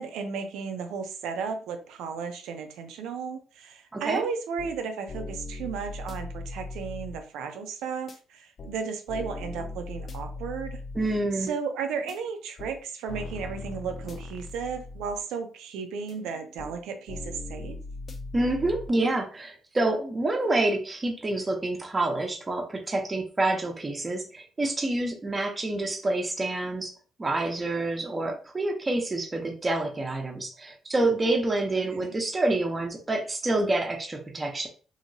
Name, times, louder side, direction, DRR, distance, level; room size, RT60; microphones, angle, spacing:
voice 1, 0.0-10.8 11.3-17.8 32.0-32.1, right 5 dB, 90° right, 6 dB, 0.5 m, -34 dB
voice 2, 3.9-4.2 10.9-11.5 18.3-26.9 27.2-34.7, right 2 dB, 25° right, 2 dB, 0.8 m, -27 dB
sound 1, 4.1-4.2 4.6-4.8 5.1-7.2 8.1-8.2 8.6-8.8 9.1-11.2 12.1-12.2 12.6-12.8 13.1-15.2 16.1-16.8 17.1-18.9, left 2 dB, 50° left, 0.4 m, -39 dB
2.9 x 2.8 x 2.7 m, 0.38 s
cardioid pair, 90°, 0 cm